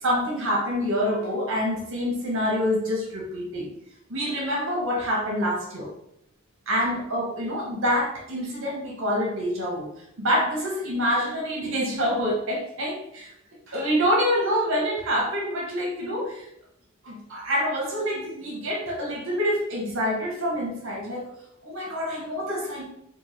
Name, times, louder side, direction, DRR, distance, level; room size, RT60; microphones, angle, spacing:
voice 1, 0.0-3.7 4.1-5.9 6.7-9.9 10.2-13.3 13.7-16.5 17.0-21.3 21.6-22.8, equal, 65° right, -2 dB, 1.0 m, -26 dB
3.6 x 2.5 x 3.1 m, 0.76 s
head